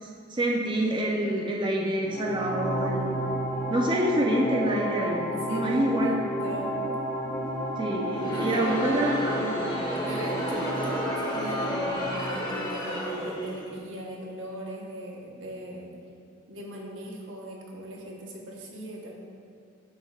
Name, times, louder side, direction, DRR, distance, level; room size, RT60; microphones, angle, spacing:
voice 1, 0.0-3.1 3.7-6.1 7.8-9.5, right 1 dB, 25° right, -3 dB, 0.5 m, -27 dB
sound 1, 2.0-12.0, right 1 dB, 75° left, 1.3 m, -31 dB
voice 2, 5.3-6.7 8.3-8.9 10.0-15.9 16.5-19.1, right 1 dB, 80° right, -2 dB, 1.1 m, -39 dB
Crowd, 8.0-13.7, left 1 dB, 20° left, 1.0 m, -32 dB
12.0 x 4.4 x 2.4 m, 2.3 s
head